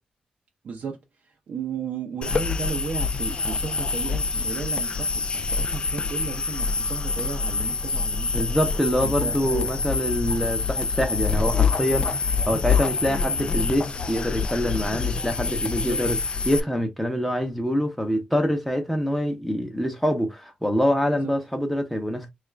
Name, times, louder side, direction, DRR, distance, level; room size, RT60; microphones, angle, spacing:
voice 1, 0.6-8.6 9.0-9.7 15.8-16.0 21.2-21.3, right 5 dB, 60° right, 0.7 m, -34 dB
sound 1, 2.2-16.6, left 4 dB, 40° left, 0.4 m, -26 dB
voice 2, 8.3-16.2 16.5-22.3, equal, ahead, 0.8 m, -25 dB
3.5 x 2.4 x 3.2 m
cardioid pair, 120°, 3 cm